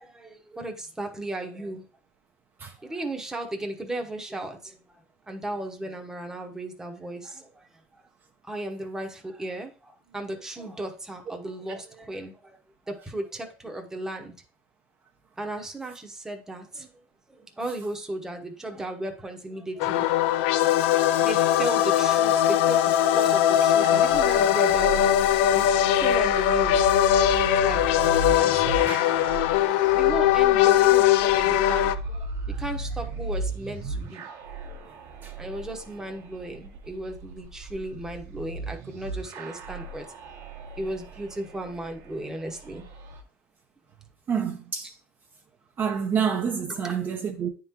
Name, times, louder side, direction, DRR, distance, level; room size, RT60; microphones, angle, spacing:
voice 1, 0.0-1.8 2.8-4.8 5.3-7.7 8.5-12.6 12.9-14.3 15.4-16.9 17.3-20.3 21.2-25.0 25.5-27.0 27.2-27.9 28.4-29.4 29.9-34.3 34.7-34.9 35.4-40.0 40.8-42.9 46.7-46.9, right 1 dB, 10° right, 1.0 m, -35 dB
sound 1, 19.8-31.9, left 11 dB, 80° left, 0.4 m, -21 dB
sound 2, 23.8-43.2, right 3 dB, 55° right, 1.1 m, -36 dB
voice 2, 44.3-44.9 45.8-47.5, right 7 dB, 35° right, 0.7 m, -28 dB
9.4 x 3.7 x 2.9 m
supercardioid pair, 115°, 6 cm